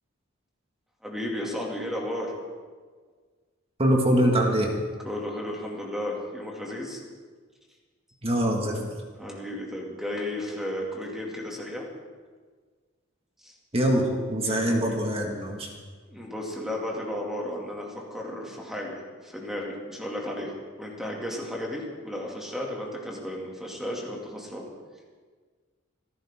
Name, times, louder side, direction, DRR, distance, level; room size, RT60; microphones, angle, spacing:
voice 1, 1.0-2.3 5.0-7.0 9.2-11.9 13.4-13.5 14.4-15.0 16.1-24.7, left 1 dB, ahead, -2 dB, 2.5 m, -34 dB
voice 2, 3.8-4.7 8.2-9.0 13.7-15.7, right 1 dB, 30° right, 1 dB, 2.1 m, -24 dB
27.0 x 11.0 x 3.8 m, 1.5 s
head